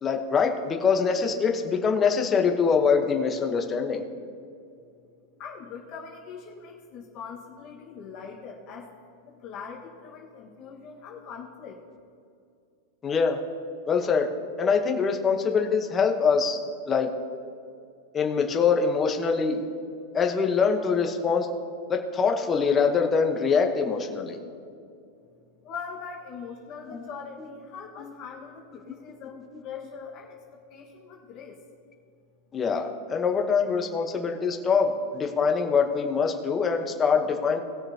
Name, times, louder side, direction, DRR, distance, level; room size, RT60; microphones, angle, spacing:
voice 1, 0.0-4.0 13.0-13.4 13.9-14.3 14.6-16.6 16.9-17.1 18.1-19.6 20.1-21.5 21.9-24.4 26.9-27.1 28.0-28.1 32.5-37.6, left 5 dB, 20° left, 3 dB, 1.0 m, -24 dB
voice 2, 5.4-8.9 9.2-11.8 25.6-31.6, left 6 dB, 35° left, -2 dB, 1.5 m, -42 dB
19.5 x 6.7 x 2.9 m, 2.5 s
supercardioid pair, 160°, 0 cm